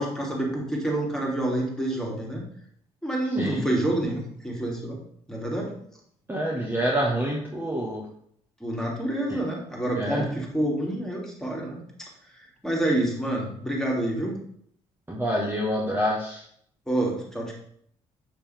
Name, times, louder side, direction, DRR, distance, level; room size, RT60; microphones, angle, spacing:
voice 1, 0.0-2.4 3.0-5.0 5.3-5.7 8.6-11.8 12.3-14.4 16.9-17.5, right 1 dB, 5° left, -2 dB, 2.9 m, -28 dB
voice 2, 6.3-8.0 10.0-10.3 15.1-16.4, equal, 15° right, -3 dB, 1.7 m, -27 dB
6.7 x 5.7 x 3.6 m, 0.65 s
hypercardioid pair, 50°, 14 cm